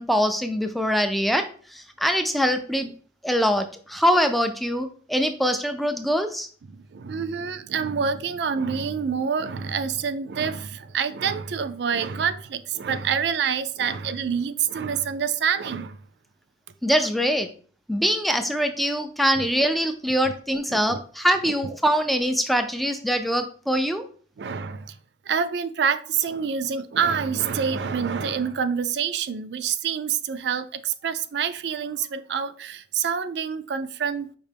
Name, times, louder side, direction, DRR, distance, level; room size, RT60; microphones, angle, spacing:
voice 1, 0.0-1.4 1.7-2.9 3.2-6.5 16.8-17.5 17.9-24.0, equal, ahead, 0.3 m, -23 dB
voice 2, 6.7-16.0 19.4-19.5 20.7-21.0 21.4-21.5 24.4-25.0 25.3-34.3, right 7 dB, 70° right, 0.4 m, -27 dB
5.3 x 2.9 x 3.3 m
head